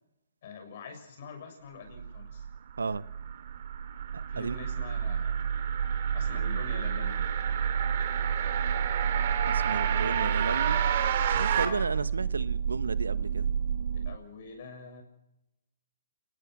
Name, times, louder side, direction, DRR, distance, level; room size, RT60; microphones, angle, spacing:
voice 1, 0.4-2.4 4.3-5.5 6.1-7.3 10.0-10.4 11.5-11.9 13.9-15.0, left 4 dB, 50° left, 6.6 m, -45 dB
sound 1, 1.9-14.2, right 7 dB, 70° right, 1.1 m, -31 dB
sound 2, 3.3-11.7, right 9 dB, 50° right, 3.0 m, -32 dB
voice 2, 9.5-10.8 11.3-13.5, right 4 dB, 85° right, 1.0 m, -33 dB
30.0 x 18.0 x 6.2 m
hypercardioid pair, 145°, 0 cm